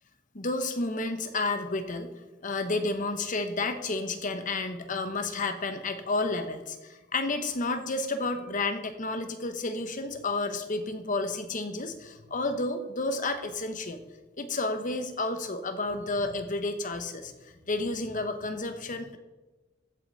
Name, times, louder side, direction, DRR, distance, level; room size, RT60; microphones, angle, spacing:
voice 1, 0.3-2.1 2.4-14.0 14.4-19.2, left 2 dB, 45° left, 8 dB, 1.1 m, -31 dB
15.0 x 8.4 x 4.1 m, 1.2 s
head